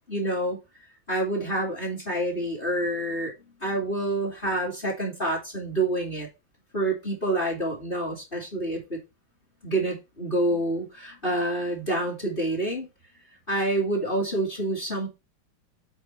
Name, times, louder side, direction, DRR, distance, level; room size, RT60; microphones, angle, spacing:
voice 1, 0.1-0.6 1.1-3.3 3.6-6.3 6.7-9.0 9.6-12.9 13.5-15.1, right 1 dB, 25° left, 2.3 m, -27 dB
8.2 x 3.6 x 5.3 m
omnidirectional pair, 2.3 m